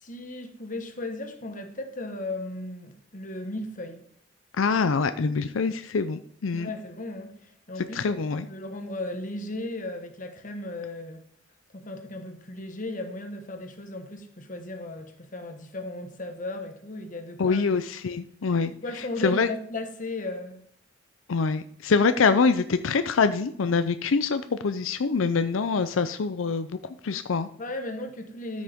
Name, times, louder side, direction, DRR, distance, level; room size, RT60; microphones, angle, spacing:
voice 1, 0.0-4.0 6.5-7.3 7.7-8.2 8.5-11.2 11.7-17.6 18.8-20.7 27.6-28.6, left 2 dB, 40° left, 1.3 m, -36 dB
voice 2, 4.6-6.7 7.9-8.5 17.4-18.7 19.2-19.5 21.3-26.8 27.0-27.5, left 4 dB, 90° left, 0.5 m, -25 dB
13.5 x 6.5 x 3.6 m
head